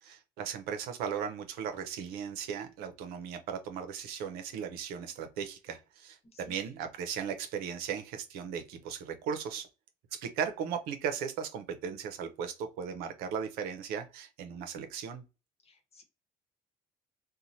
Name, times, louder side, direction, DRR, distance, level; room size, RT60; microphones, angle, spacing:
voice 1, 0.0-9.7 10.1-15.2, right 7 dB, 85° right, 0.6 m, -37 dB
voice 2, 15.6-16.0, left 2 dB, 40° left, 1.0 m, -57 dB
3.0 x 2.2 x 2.6 m
cardioid pair, 90°, 15 cm